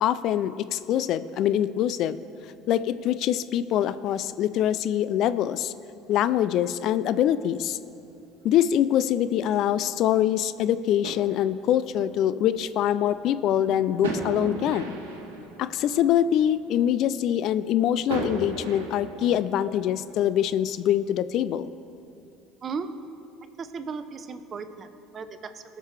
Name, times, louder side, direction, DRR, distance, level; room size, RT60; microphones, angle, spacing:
voice 1, 0.0-2.2 2.7-5.7 6.1-7.8 8.4-15.0 15.6-21.7, left 11 dB, 60° left, 14 dB, 0.3 m, -24 dB
sound 1, 7.4-22.0, right 3 dB, 90° right, 1.2 m, -39 dB
voice 2, 22.6-23.0 23.6-25.6, right 5 dB, 40° right, 11 dB, 0.7 m, -36 dB
20.0 x 6.6 x 3.2 m, 2.7 s
hypercardioid pair, 75°, 0 cm